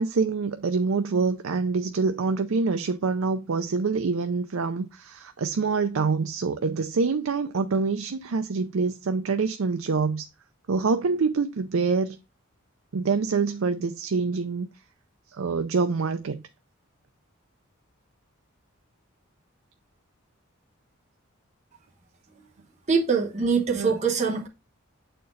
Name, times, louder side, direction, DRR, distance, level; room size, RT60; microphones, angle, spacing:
voice 1, 0.0-10.3 10.7-12.2 12.9-14.7 15.4-16.4 23.8-23.9, right 4 dB, 75° right, 0.5 m, -26 dB
voice 2, 22.9-24.5, right 5 dB, 35° right, 1.3 m, -23 dB
7.5 x 4.4 x 3.9 m
head